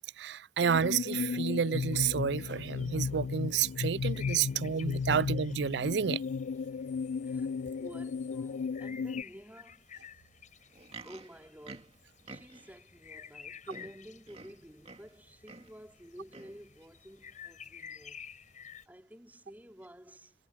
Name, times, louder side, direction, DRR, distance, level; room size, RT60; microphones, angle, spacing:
voice 1, 0.2-6.2, right 7 dB, 65° right, 0.4 m, -30 dB
sound 1, 0.6-9.2, left 5 dB, 65° left, 0.3 m, -35 dB
sound 2, 0.8-18.9, left 7 dB, 45° left, 7.3 m, -52 dB
voice 2, 6.7-10.5 11.0-18.3 18.9-20.3, equal, 10° right, 4.3 m, -52 dB
Livestock farm animals working animals, 10.6-12.8 13.4-13.5 13.7-15.2 15.4-15.8 16.3-16.6 17.3-17.4, right 3 dB, 35° right, 2.3 m, -50 dB
head